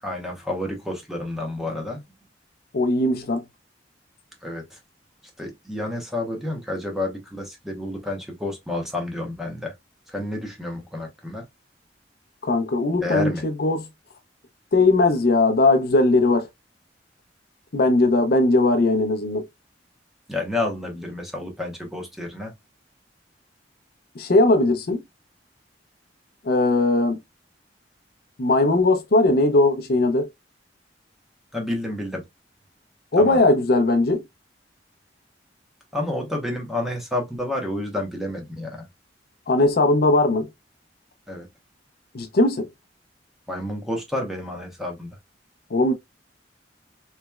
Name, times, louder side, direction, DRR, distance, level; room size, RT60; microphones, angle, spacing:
voice 1, 0.0-2.0 4.4-4.6 5.4-9.7 10.1-11.4 13.0-13.4 20.3-22.5 31.5-32.2 33.2-33.4 35.9-38.9 41.3-41.5 43.5-45.1, left 1 dB, ahead, 1.0 m, -29 dB
voice 2, 2.7-3.4 12.4-13.9 14.7-16.5 17.7-19.4 24.2-25.0 26.4-27.2 28.4-30.3 33.1-34.2 39.5-40.5 42.1-42.7 45.7-45.9, left 2 dB, 60° left, 0.6 m, -19 dB
3.3 x 3.0 x 2.2 m
head